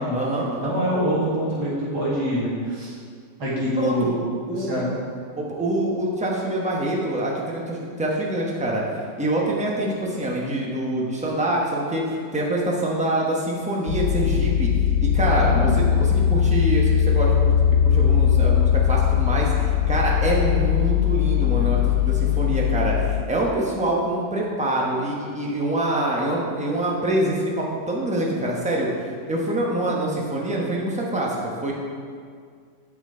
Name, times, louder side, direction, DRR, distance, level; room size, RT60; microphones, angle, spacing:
voice 1, 0.1-0.8 3.7-4.1 4.5-4.7 5.4-8.8 9.2-14.7 15.0-17.5 17.8-31.7, right 1 dB, 5° right, -3 dB, 0.7 m, -25 dB
voice 2, 0.6-2.9 3.4-4.2 4.5-4.9 15.3-15.8, equal, 60° right, -7 dB, 2.7 m, -25 dB
sound 1, 13.9-23.2, left 9 dB, 75° left, 1.0 m, -20 dB
8.7 x 6.0 x 4.4 m, 2.1 s
omnidirectional pair, 2.0 m